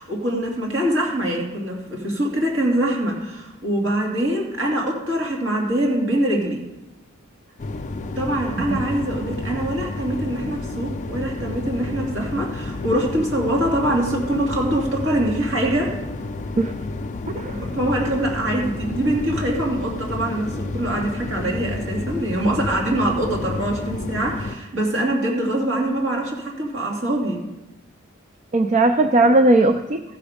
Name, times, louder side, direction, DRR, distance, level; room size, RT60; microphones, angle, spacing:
voice 1, 0.0-6.6 8.2-16.0 17.3-27.4, right 1 dB, 60° right, -2 dB, 2.6 m, -24 dB
sound 1, 7.6-24.6, left 2 dB, 35° left, 0.4 m, -31 dB
voice 2, 28.5-30.0, right 2 dB, 35° right, 8 dB, 0.4 m, -17 dB
14.5 x 6.1 x 5.0 m, 1.0 s
head